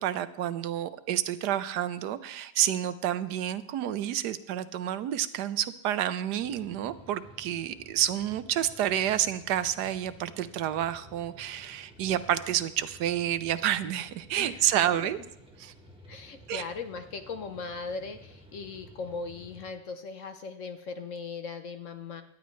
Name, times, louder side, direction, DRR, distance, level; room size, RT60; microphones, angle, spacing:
voice 1, 0.0-15.2 15.6-15.7 16.5-16.6, right 11 dB, 80° right, 13 dB, 1.2 m, -29 dB
sound 1, 6.4-19.7, equal, 5° right, 1.4 m, -53 dB
voice 2, 14.3-14.7 16.1-22.2, left 4 dB, 55° left, 8 dB, 1.0 m, -39 dB
18.0 x 11.5 x 3.2 m, 0.78 s
omnidirectional pair, 1.8 m